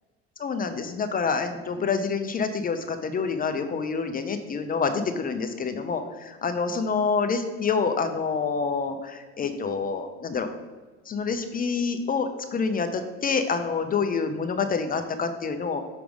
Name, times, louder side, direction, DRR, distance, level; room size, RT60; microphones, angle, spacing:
voice 1, 0.4-10.5 11.1-15.8, left 5 dB, 25° left, 8 dB, 0.5 m, -27 dB
6.0 x 3.3 x 5.2 m, 1.3 s
supercardioid pair, 95°, 32 cm